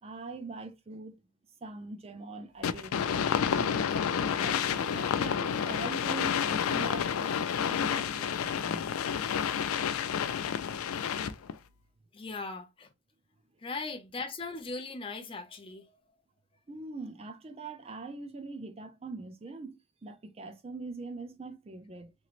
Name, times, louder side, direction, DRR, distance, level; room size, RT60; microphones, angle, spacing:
voice 1, 0.0-1.2 1.6-8.9 16.7-22.1, right 3 dB, 25° right, 0.4 m, -43 dB
sound 1, 2.6-11.5, left 7 dB, 80° left, 0.4 m, -30 dB
voice 2, 12.1-12.9 13.6-15.9, left 3 dB, 25° left, 0.5 m, -39 dB
3.0 x 2.9 x 2.4 m
head